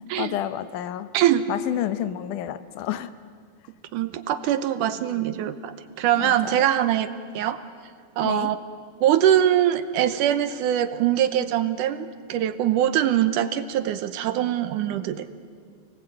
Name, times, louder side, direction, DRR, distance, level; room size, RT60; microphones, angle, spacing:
voice 1, 0.2-1.1 1.5-3.1 6.2-6.7 8.2-8.5, left 12 dB, 75° left, 12 dB, 2.2 m, -30 dB
voice 2, 1.1-1.5 3.9-7.6 8.2-8.6 9.0-15.3, right 11 dB, 75° right, 11 dB, 2.3 m, -23 dB
29.0 x 19.0 x 8.9 m, 2.1 s
omnidirectional pair, 4.0 m